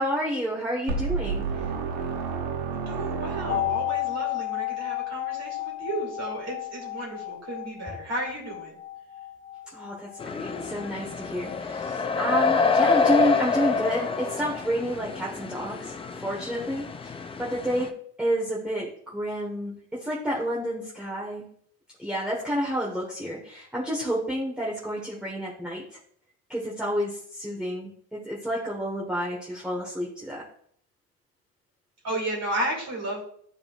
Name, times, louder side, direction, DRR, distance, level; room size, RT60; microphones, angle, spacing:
voice 1, 0.0-1.5 9.7-21.4 22.0-25.8 26.5-30.4, equal, ahead, -5 dB, 1.4 m, -30 dB
sound 1, 0.9-4.1, right 5 dB, 75° right, 1.3 m, -30 dB
voice 2, 2.7-8.8 32.0-33.2, right 1 dB, 35° right, -2 dB, 2.6 m, -33 dB
sound 2, 3.5-13.2 13.5-13.6, left 17 dB, 40° left, 1.6 m, -34 dB
sound 3, 10.2-17.9, left 4 dB, 15° left, 0.3 m, -27 dB
10.5 x 3.7 x 2.5 m, 0.63 s
supercardioid pair, 85°, 43 cm